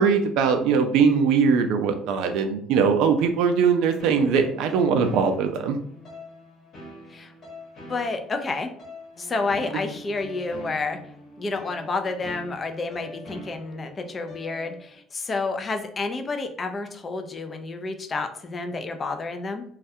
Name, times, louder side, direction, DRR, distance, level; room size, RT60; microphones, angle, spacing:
voice 1, 0.0-5.8, right 6 dB, 75° right, 6 dB, 0.3 m, -21 dB
sound 1, 4.0-15.0, left 1 dB, 50° left, 1.0 m, -44 dB
voice 2, 7.9-8.7 9.2-11.0 11.4-19.6, left 3 dB, 30° left, 6 dB, 0.3 m, -30 dB
2.3 x 2.1 x 2.6 m, 0.65 s
cardioid pair, 120°, 0 cm